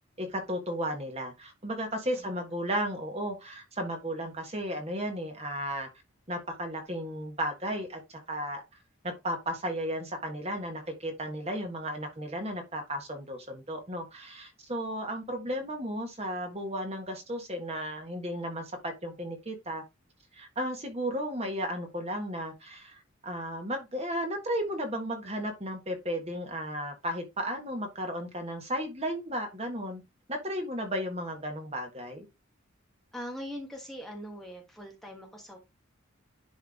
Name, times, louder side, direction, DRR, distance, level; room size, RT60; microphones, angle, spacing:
voice 1, 0.2-5.9 6.3-8.6 9.0-19.8 20.3-30.0 30.3-32.3, equal, 30° right, 1.6 m, -34 dB
voice 2, 33.1-35.6, equal, ahead, 1.4 m, -41 dB
10.5 x 3.6 x 3.6 m
head